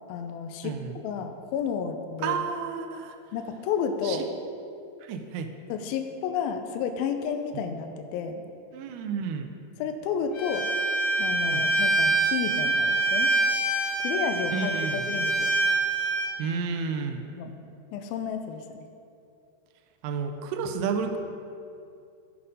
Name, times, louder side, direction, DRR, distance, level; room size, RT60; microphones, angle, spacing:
voice 1, 0.1-2.4 3.3-4.3 5.7-8.4 9.8-10.7 11.2-13.3 14.0-14.7 15.1-15.5 17.4-17.5 17.9-18.7, left 7 dB, 85° left, 6 dB, 2.2 m, -31 dB
voice 2, 0.6-1.0 2.2-3.2 4.0-4.2 5.0-5.5 8.7-9.5 11.5-11.7 14.5-15.0 16.4-17.3 20.0-21.2, right 6 dB, 85° right, 6 dB, 2.6 m, -31 dB
Bowed string instrument, 10.3-16.3, right 3 dB, 60° left, 3.2 m, -25 dB
15.5 x 5.6 x 5.2 m, 2.6 s
omnidirectional pair, 4.8 m